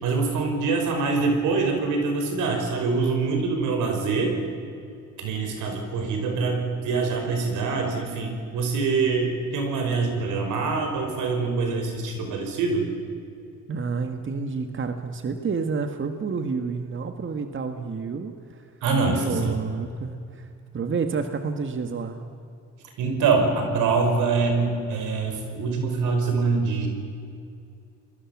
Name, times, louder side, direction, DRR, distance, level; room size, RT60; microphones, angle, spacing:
voice 1, 0.0-4.4 5.2-12.9 18.8-19.5 23.0-26.9, right 4 dB, 90° right, 4 dB, 5.5 m, -24 dB
voice 2, 13.7-18.7 19.0-20.5 20.7-22.2, right 5 dB, 40° right, 7 dB, 1.8 m, -29 dB
29.5 x 21.5 x 7.4 m, 2.5 s
cardioid pair, 90°, 30 cm